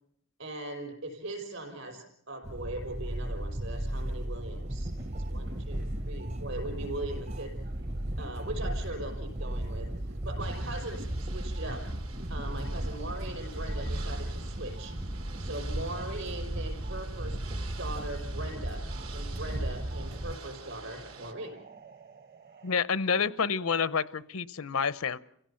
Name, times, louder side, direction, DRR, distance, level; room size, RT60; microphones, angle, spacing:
voice 1, 0.4-4.9 5.3-7.5 8.2-9.9 10.2-11.8 12.3-14.9 15.4-17.4 17.8-18.9 19.1-21.6, right 2 dB, 60° right, 4 dB, 5.6 m, -40 dB
sound 1, 2.4-20.4, right 1 dB, 30° right, 0.7 m, -35 dB
sound 2, 4.7-16.0 16.4-22.8, right 1 dB, 45° right, 1.1 m, -51 dB
Ocean / Boat Water vehicle, 10.4-21.3, right 4 dB, 85° right, 2.7 m, -49 dB
voice 2, 22.6-25.2, left 6 dB, 90° left, 16 dB, 0.8 m, -28 dB
29.5 x 16.5 x 5.8 m, 0.74 s
head